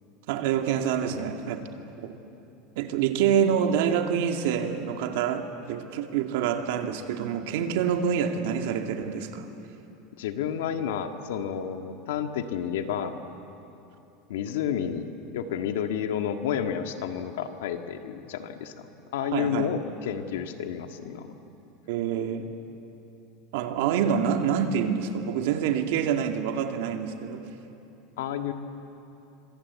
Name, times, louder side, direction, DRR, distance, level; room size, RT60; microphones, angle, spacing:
voice 1, 0.3-1.6 2.0-2.2 2.8-9.5 19.3-19.7 21.9-22.5 23.5-27.5, right 8 dB, 75° right, 5 dB, 2.3 m, -26 dB
voice 2, 10.2-13.1 14.3-15.1 15.3-18.9 19.1-21.3 28.2-28.5, left 8 dB, 90° left, 6 dB, 1.9 m, -30 dB
25.5 x 24.0 x 8.4 m, 2.9 s
supercardioid pair, 150°, 0 cm